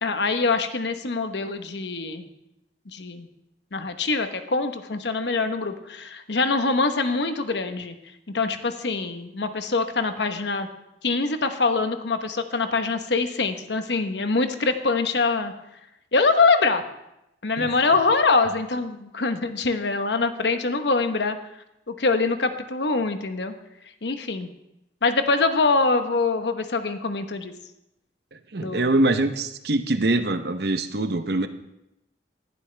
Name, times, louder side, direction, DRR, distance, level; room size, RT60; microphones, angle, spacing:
voice 1, 0.0-2.3 2.9-3.3 3.7-8.0 8.3-10.7 11.0-15.5 16.1-16.8 17.4-21.4 21.9-23.5 24.0-24.5 25.0-27.5 28.6-28.9, left 3 dB, 75° left, 8 dB, 1.0 m, -24 dB
voice 2, 28.3-31.5, right 2 dB, 65° right, 9 dB, 0.8 m, -24 dB
19.0 x 11.5 x 3.3 m, 0.87 s
head